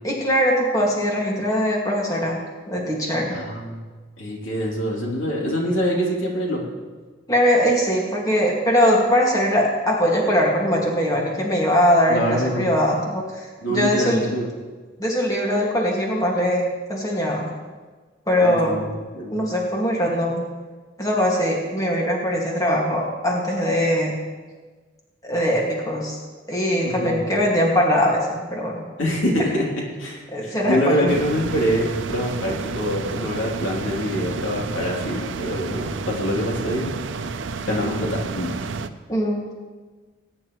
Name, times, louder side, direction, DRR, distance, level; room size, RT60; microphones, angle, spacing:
voice 1, 0.0-2.4 2.7-3.4 7.3-14.3 15.0-17.5 18.3-18.8 19.3-20.4 21.0-24.2 25.2-26.2 26.5-28.8 29.4-29.5 30.3-31.1 39.1-39.5, equal, 20° left, -3 dB, 2.0 m, -21 dB
voice 2, 3.3-3.8 4.2-6.6 12.1-12.7 13.6-14.5 18.4-19.4 26.8-27.2 29.0-37.0 37.6-38.5, equal, 90° left, -3 dB, 3.1 m, -25 dB
sound 1, 31.1-38.9, right 4 dB, 80° right, 0.6 m, -30 dB
20.5 x 10.0 x 3.1 m, 1.4 s
head